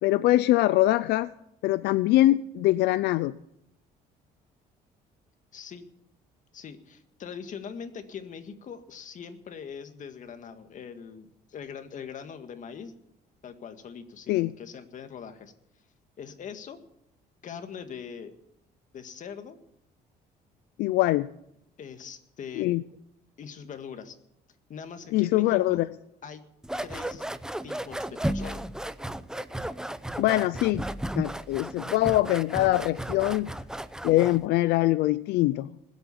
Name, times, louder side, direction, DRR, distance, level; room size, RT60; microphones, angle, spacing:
voice 1, 0.0-1.3 1.6-3.4 14.3-14.5 20.8-21.3 22.6-22.8 25.1-25.9 30.2-30.8 31.2-33.5 34.0-35.7, left 16 dB, 80° left, 15 dB, 0.5 m, -23 dB
voice 2, 5.5-5.8 6.5-12.9 13.4-15.5 16.2-16.8 17.4-18.3 18.9-19.6 21.8-22.7 23.4-24.2 24.7-25.8 26.2-26.4 26.8-27.3 27.6-28.7, left 7 dB, 50° left, 7 dB, 1.8 m, -41 dB
sound 1, 26.6-34.5, right 1 dB, 5° right, 0.6 m, -34 dB
20.0 x 8.3 x 7.0 m, 0.80 s
cardioid pair, 110°, 17 cm